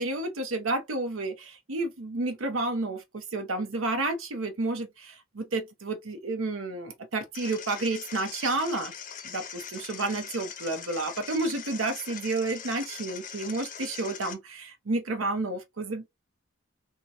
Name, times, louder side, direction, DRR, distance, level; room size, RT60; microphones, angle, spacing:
voice 1, 0.0-8.9 9.2-16.1, right 2 dB, 75° right, 0.8 m, -31 dB
sound 1, 7.3-14.3, left 7 dB, 40° left, 0.6 m, -42 dB
3.7 x 2.2 x 2.8 m
head